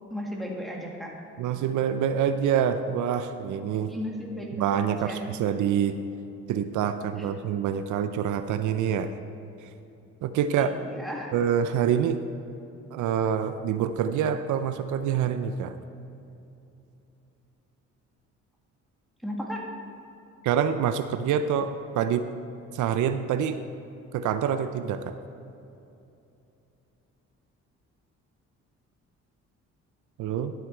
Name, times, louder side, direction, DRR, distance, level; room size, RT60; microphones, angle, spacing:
voice 1, 0.0-1.2 3.9-4.5 5.0-5.3 7.2-7.3 10.5-11.3 19.2-19.6, left 1 dB, ahead, -2 dB, 1.9 m, -35 dB
voice 2, 1.4-4.0 4.5-6.0 6.5-9.1 10.2-10.7 11.3-12.2 12.9-15.8 20.4-22.3 22.7-23.6 24.1-25.1 30.2-30.5, right 8 dB, 80° right, 10 dB, 0.6 m, -26 dB
11.5 x 8.0 x 4.4 m, 2.8 s
cardioid pair, 90°, 30 cm